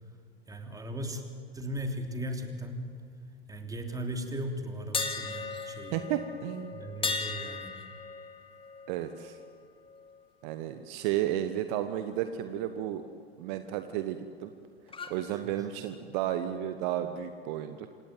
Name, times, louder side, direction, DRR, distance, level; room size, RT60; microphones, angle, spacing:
voice 1, 0.5-1.2 1.5-2.9 3.5-6.0 6.7-7.7 15.3-15.7, right 1 dB, 10° right, 4 dB, 3.1 m, -37 dB
sound 1, 4.9-10.8 11.2-11.4 14.9-15.2, left 4 dB, 15° left, 2.5 m, -38 dB
voice 2, 5.9-6.8 8.9-9.4 10.4-13.0 13.4-14.5 15.1-17.9, right 11 dB, 50° right, 9 dB, 1.3 m, -33 dB
27.0 x 18.0 x 9.3 m, 2.2 s
figure-of-eight pair, 85°, 31 cm